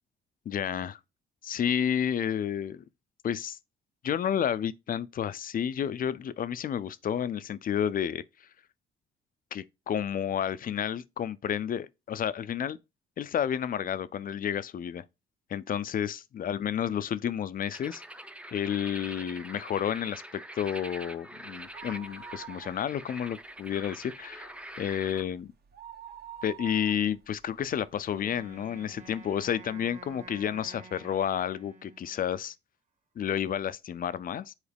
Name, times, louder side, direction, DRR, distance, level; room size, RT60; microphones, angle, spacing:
voice 1, 0.5-1.0 1.4-2.8 3.2-3.6 4.0-8.2 9.5-12.8 13.2-15.0 15.5-18.0 18.5-25.5 26.4-32.5 33.2-34.5, left 9 dB, 45° left, 0.4 m, -31 dB
sound 1, 17.7-25.2, right 1 dB, 5° right, 0.5 m, -45 dB
sound 2, 21.6-23.3 23.6-23.7 24.1-28.5 29.1-29.2 29.9-30.0 30.3-30.4, right 8 dB, 50° right, 1.1 m, -47 dB
Wind instrument woodwind instrument, 28.1-32.5, right 4 dB, 35° right, 1.3 m, -50 dB
7.2 x 4.0 x 3.4 m
cardioid pair, 90°, 20 cm